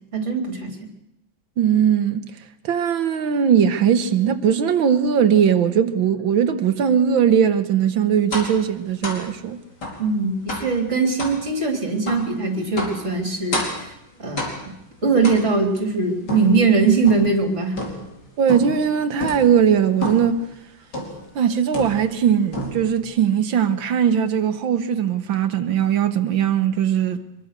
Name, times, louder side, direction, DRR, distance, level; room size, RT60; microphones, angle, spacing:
voice 1, 0.1-0.9 10.0-13.9 14.2-14.6 15.0-17.8, right 4 dB, 35° right, 3.6 m, -21 dB
voice 2, 1.6-2.3 2.6-9.6 18.4-20.4 21.4-27.3, right 8 dB, 80° right, 1.9 m, -19 dB
sound 1, 8.3-8.6 9.0-9.3 9.8-10.0 10.5-10.8 11.2-11.4 12.1-12.3 12.8-13.0 13.5-13.9 14.4-14.8 15.2-15.8 16.3-17.4 17.8-18.2 18.5-18.8 19.2-19.5 20.0-20.4 20.9-21.3 21.7-22.2 22.5-23.0, left 1 dB, 55° left, 5.2 m, -29 dB
25.0 x 23.0 x 6.7 m
omnidirectional pair, 2.1 m